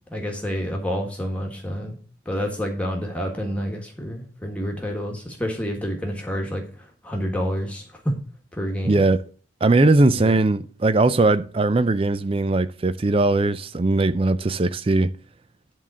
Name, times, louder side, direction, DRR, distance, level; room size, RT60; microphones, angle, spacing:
voice 1, 0.1-2.0 2.2-8.1 8.5-9.1 10.2-10.3, equal, 5° left, 1.4 m, -28 dB
voice 2, 8.8-9.2 9.6-15.1, right 2 dB, 25° right, 0.4 m, -19 dB
10.5 x 3.7 x 7.3 m
head